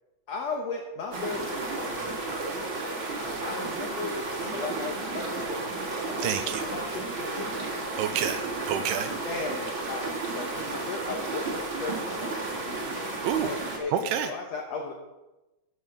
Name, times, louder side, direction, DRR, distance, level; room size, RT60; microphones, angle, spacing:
voice 1, 0.3-2.1 3.4-4.2 4.5-7.9 9.2-13.0 13.4-15.1, left 4 dB, 75° left, 1 dB, 1.5 m, -36 dB
sound 1, 1.1-13.8, right 3 dB, 40° right, 2.2 m, -33 dB
voice 2, 6.2-6.6 8.0-9.1 13.2-13.5 13.9-14.3, right 9 dB, 85° right, 8 dB, 2.6 m, -28 dB
14.0 x 5.7 x 7.0 m, 1.0 s
omnidirectional pair, 4.6 m